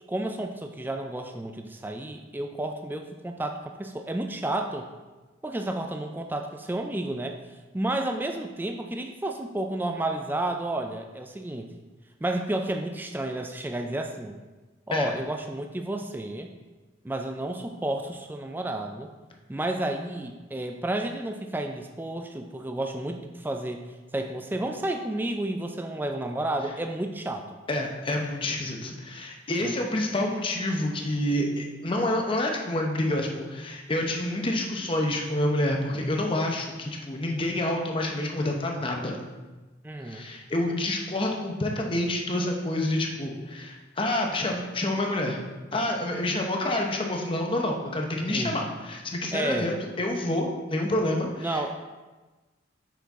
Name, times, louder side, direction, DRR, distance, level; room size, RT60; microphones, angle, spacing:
voice 1, 0.1-4.9 5.4-7.4 7.7-11.7 12.2-14.4 14.9-16.5 17.0-19.1 19.5-27.6 29.6-29.7 39.8-40.3 48.3-48.6 49.3-49.7 51.4-51.7, right 1 dB, 10° right, 5 dB, 0.3 m, -31 dB
voice 2, 27.7-39.1 40.1-45.4 45.7-51.7, left 1 dB, 25° left, 1 dB, 0.7 m, -28 dB
5.8 x 5.7 x 3.6 m, 1.2 s
head